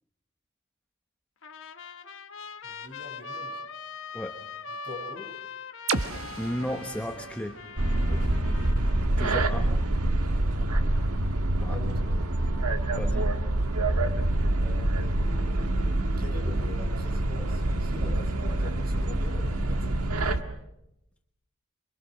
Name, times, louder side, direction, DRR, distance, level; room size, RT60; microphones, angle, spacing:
Trumpet, 1.4-9.1, left 5 dB, 60° left, 1.4 m, -42 dB
voice 1, 2.6-3.6 4.7-5.4 8.0-8.4 9.0-9.4 10.2-10.8 11.7-12.2 14.5-15.8 16.2-20.1, left 2 dB, 45° right, 4 dB, 7.3 m, -44 dB
sound 1, 5.9-9.7, right 4 dB, 70° right, 1.5 m, -36 dB
voice 2, 6.4-7.6 9.2-9.8 11.6-11.8 13.0-13.3, equal, 5° left, 4 dB, 1.2 m, -33 dB
sound 2, 7.8-20.4, right 1 dB, 90° right, 1.7 m, -26 dB
27.5 x 24.5 x 6.3 m, 0.83 s
head